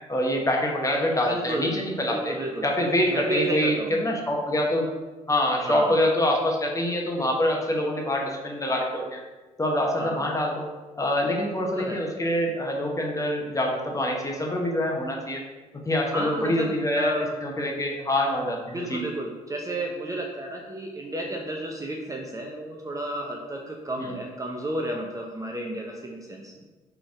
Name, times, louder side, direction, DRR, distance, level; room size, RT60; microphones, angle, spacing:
voice 1, 0.1-2.3 2.6-4.9 5.3-9.2 9.6-10.7 11.0-15.4 15.8-17.2 17.4-19.1 24.0-24.2, left 1 dB, 20° left, 0 dB, 1.0 m, -25 dB
voice 2, 1.3-1.8 2.1-2.7 3.1-4.0 5.6-6.0 10.0-10.2 11.6-12.0 16.1-17.3 18.7-26.5, right 1 dB, 20° right, 0 dB, 0.6 m, -32 dB
3.9 x 3.4 x 3.7 m, 1.2 s
hypercardioid pair, 50°, 18 cm